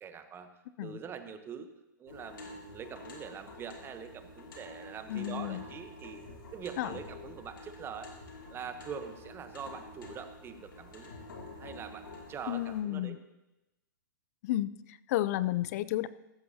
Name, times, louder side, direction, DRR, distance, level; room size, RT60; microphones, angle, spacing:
voice 1, 0.0-0.5 0.8-1.7 2.0-6.2 6.5-8.1 8.5-11.2 11.6-13.2, right 7 dB, 20° right, 9 dB, 1.0 m, -44 dB
sound 1, 2.1-12.8, left 2 dB, 80° left, 2.7 m, -48 dB
voice 2, 5.1-5.6 6.8-6.9 12.5-13.2 14.4-16.1, left 14 dB, 50° left, 17 dB, 0.5 m, -32 dB
15.5 x 13.5 x 2.8 m, 0.98 s
hypercardioid pair, 120°, 11 cm